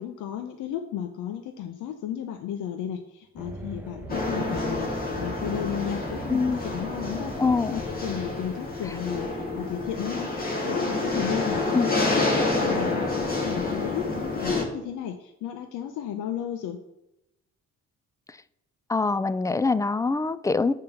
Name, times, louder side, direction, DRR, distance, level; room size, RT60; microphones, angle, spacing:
voice 1, 0.0-7.4 7.6-12.3 12.6-16.8, left 9 dB, 85° left, 6 dB, 0.7 m, -34 dB
sound 1, 3.4-8.3, right 1 dB, 5° right, 0.9 m, -41 dB
sound 2, 4.1-14.6, left 2 dB, 30° left, 2.3 m, -28 dB
voice 2, 6.3-6.6 7.4-7.8 11.7-11.9 18.9-20.7, left 4 dB, 10° left, 16 dB, 0.3 m, -24 dB
8.8 x 3.7 x 7.0 m, 0.87 s
cardioid pair, 90°, 30 cm